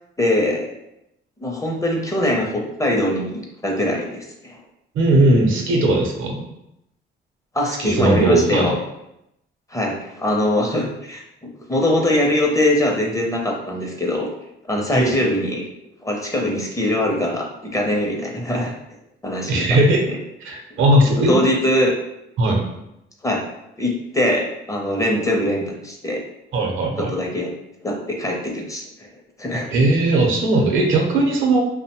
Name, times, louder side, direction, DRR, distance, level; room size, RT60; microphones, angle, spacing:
voice 1, 0.2-0.7 1.4-4.6 7.5-8.8 9.7-11.2 11.7-14.3 14.7-15.7 16.0-18.7 19.2-19.8 21.3-21.9 23.2-23.4 23.8-26.2 27.0-27.5 27.8-29.1 29.4-29.7, left 1 dB, 15° left, 0 dB, 0.5 m, -22 dB
voice 2, 4.9-6.5 7.8-8.7 14.9-15.2 19.5-20.0 20.4-21.4 22.4-22.6 26.5-27.1 29.7-31.6, right 1 dB, 80° right, 1 dB, 0.6 m, -18 dB
2.6 x 2.1 x 2.9 m, 0.84 s
cardioid pair, 90°, 20 cm